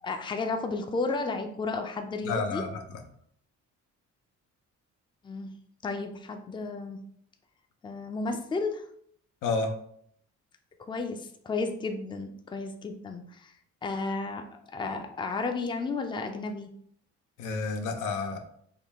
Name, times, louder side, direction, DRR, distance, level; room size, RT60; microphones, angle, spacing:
voice 1, 0.0-2.6 5.2-5.5 5.8-7.0 7.8-8.8 10.8-13.5 13.8-16.7, left 3 dB, 15° left, 6 dB, 0.4 m, -33 dB
voice 2, 2.2-3.0 9.4-9.7 17.4-18.4, left 3 dB, 85° left, 5 dB, 0.6 m, -30 dB
3.6 x 2.2 x 3.5 m, 0.66 s
cardioid pair, 90°, 30 cm